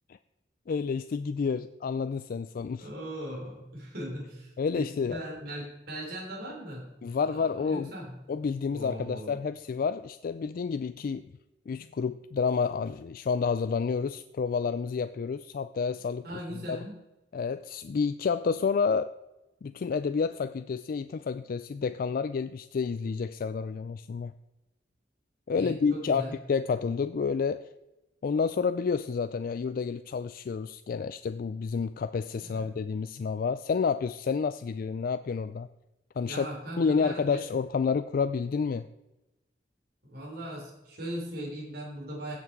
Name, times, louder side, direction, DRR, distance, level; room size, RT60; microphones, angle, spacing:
voice 1, 0.7-2.9 4.6-5.2 7.0-7.9 8.3-11.3 11.7-16.3 16.7-16.8 17.3-19.1 19.6-24.3 25.5-27.6 28.2-35.7 36.2-36.5 36.8-38.9, left 5 dB, 55° left, 12 dB, 0.3 m, -29 dB
voice 2, 2.8-7.0 7.2-8.2 8.7-9.4 16.2-16.9 25.5-26.3 32.4-32.7 36.2-37.4 40.0-42.4, equal, 60° right, -3 dB, 3.8 m, -39 dB
16.5 x 6.0 x 4.6 m, 1.0 s
head